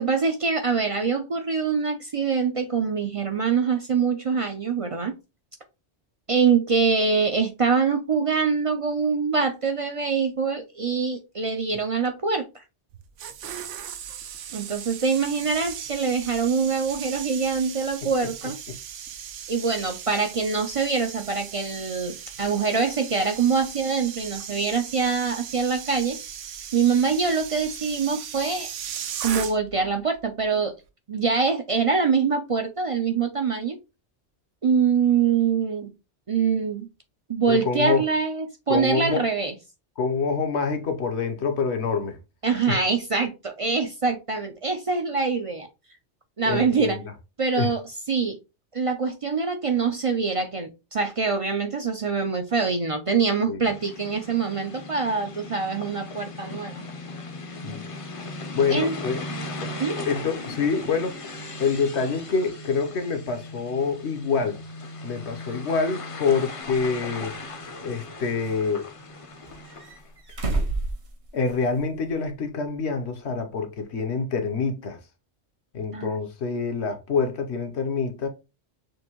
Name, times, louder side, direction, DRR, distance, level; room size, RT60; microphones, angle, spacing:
voice 1, 0.0-5.2 6.3-12.5 14.5-18.6 19.5-26.2 26.7-28.7 29.2-30.7 31.1-33.8 34.6-35.9 36.3-36.9 37.3-39.5 42.4-45.7 46.4-47.0 47.4-47.8 48.1-48.4 48.7-56.8 58.7-59.0 59.8-60.0 75.9-76.2, right 5 dB, 45° right, 0.4 m, -24 dB
sound 1, 12.9-29.9 30.1-30.4, right 9 dB, 85° right, 1.0 m, -38 dB
voice 2, 37.5-38.1 38.7-39.2 40.0-42.2 42.7-42.8 46.4-47.1 47.6-47.7 53.5-53.7 57.6-57.8 58.5-59.2 59.6-59.7 60.1-61.2 61.6-64.6 65.0-67.3 67.8-68.9 71.3-75.0 75.7-78.3, left 5 dB, 70° left, 1.1 m, -26 dB
sound 2, 53.6-70.1, left 2 dB, 35° left, 0.6 m, -38 dB
sound 3, 66.7-66.8 67.6-68.5 69.4-71.8 72.1-72.2 73.8-73.9, right 2 dB, 65° right, 1.5 m, -31 dB
6.2 x 2.6 x 2.9 m
omnidirectional pair, 1.2 m